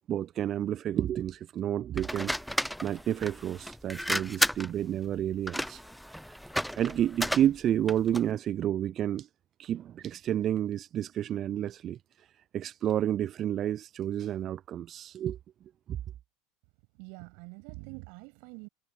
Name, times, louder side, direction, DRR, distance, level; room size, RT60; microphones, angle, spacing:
voice 1, 0.1-5.8 6.3-6.4 6.8-9.3 9.6-12.3 12.5-15.4 15.9-16.0, right 11 dB, 40° right, 0.5 m, -30 dB
sound 1, 2.0-8.3, equal, ahead, 0.7 m, -33 dB
voice 2, 17.0-18.7, right 37 dB, 60° right, 7.6 m, -45 dB
hypercardioid pair, 80°, 0 cm